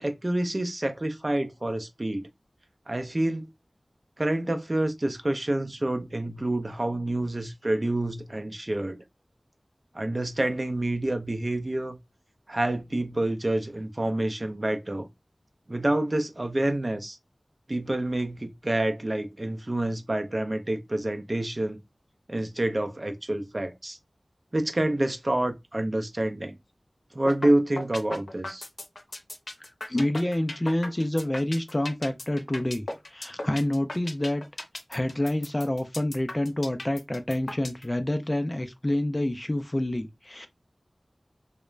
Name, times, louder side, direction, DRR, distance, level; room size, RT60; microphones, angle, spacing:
voice 1, 0.0-2.3 2.9-3.5 4.2-9.0 9.9-12.0 12.5-15.1 15.7-17.2 17.7-21.8 22.3-24.0 24.5-26.6 27.1-28.6, right 1 dB, 40° right, 0.5 m, -28 dB
sound 1, 27.3-27.5 27.8-37.8, left 2 dB, 85° left, 0.6 m, -36 dB
voice 2, 29.6-34.4 34.9-40.5, left 1 dB, 30° left, 0.4 m, -28 dB
2.4 x 2.0 x 3.1 m
wide cardioid pair, 55°, 0 cm